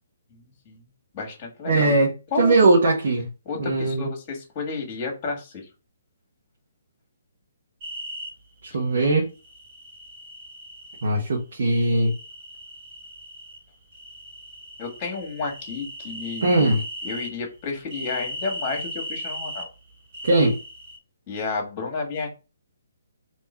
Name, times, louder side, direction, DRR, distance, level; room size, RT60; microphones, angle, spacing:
voice 1, 0.3-0.8 1.1-2.0 2.3-2.5 3.5-5.7 14.8-19.7 21.3-22.3, left 4 dB, 30° left, 1.8 m, -31 dB
voice 2, 1.7-2.1 2.4-3.3 3.5-4.1 8.7-9.3 11.0-12.1 16.4-16.8 20.2-20.6, right 2 dB, 60° right, 1.2 m, -20 dB
sound 1, 7.8-8.3 9.4-11.0 11.6-13.6 13.9-17.3 17.9-19.7 20.1-21.0, equal, 40° right, 2.1 m, -37 dB
3.6 x 3.0 x 4.4 m
figure-of-eight pair, 140°, 0 cm